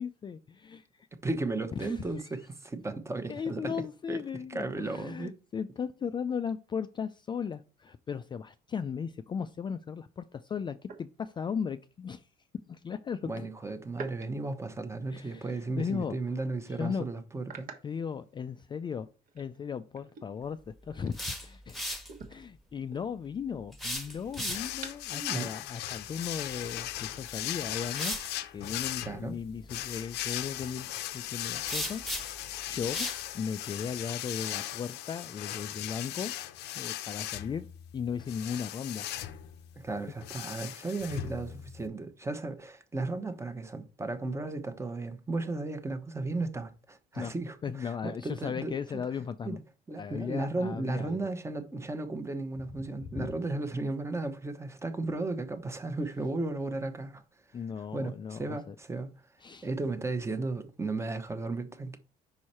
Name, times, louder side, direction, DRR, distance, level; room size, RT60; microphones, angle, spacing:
voice 1, 0.0-1.1 1.8-2.3 3.3-12.3 12.7-13.4 15.1-16.2 16.7-17.1 17.8-19.1 19.3-21.9 22.3-28.1 28.5-33.1 33.3-36.3 36.7-37.7 37.9-39.3 47.1-47.3 47.6-49.6 50.0-51.2 52.8-52.9 53.1-53.3 57.5-58.8 59.4-59.7, left 6 dB, 25° left, 0.3 m, -37 dB
voice 2, 1.2-3.7 4.1-4.2 4.5-5.4 13.2-17.7 25.1-25.5 29.0-29.3 39.8-48.7 49.4-49.6 49.9-57.2 57.9-59.1 59.6-62.0, right 3 dB, 15° right, 0.9 m, -35 dB
sound 1, 10.8-11.7 13.9-15.5 15.9-16.1 16.5-16.6 17.4-18.9 19.2-21.7 22.0-25.2, right 5 dB, 55° right, 1.3 m, -49 dB
sound 2, 20.9-22.1 23.7-24.9 27.0-27.1 27.9-28.3 31.7-32.5 32.9-33.2, equal, ahead, 1.2 m, -36 dB
sound 3, 24.5-41.9, left 13 dB, 80° left, 0.6 m, -38 dB
5.5 x 4.7 x 4.3 m
cardioid pair, 110°, 17 cm